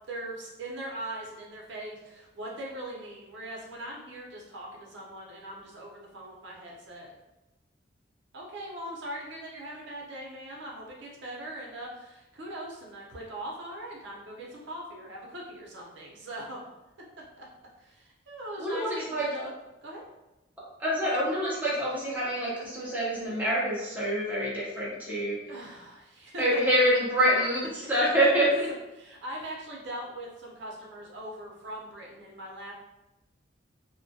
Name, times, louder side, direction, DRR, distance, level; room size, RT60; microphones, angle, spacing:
voice 1, 0.1-7.1 8.3-16.6 17.4-17.5 17.8-19.5 19.8-20.0 25.5-26.6 27.8-28.5 28.9-32.7, right 1 dB, 65° right, -2 dB, 0.6 m, -41 dB
voice 2, 18.6-19.5 20.8-25.4 26.4-28.7, equal, 10° right, -8 dB, 0.6 m, -26 dB
2.2 x 2.1 x 2.6 m, 0.99 s
head